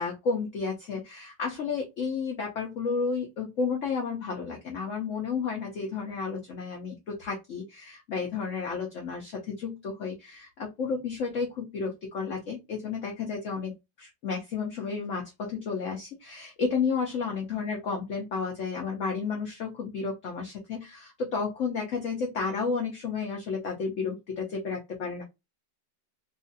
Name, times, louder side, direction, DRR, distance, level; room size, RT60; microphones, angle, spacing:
voice 1, 0.0-13.7 14.0-25.2, left 5 dB, 60° left, 1 dB, 0.9 m, -32 dB
2.9 x 2.6 x 2.6 m, 0.21 s
omnidirectional pair, 2.0 m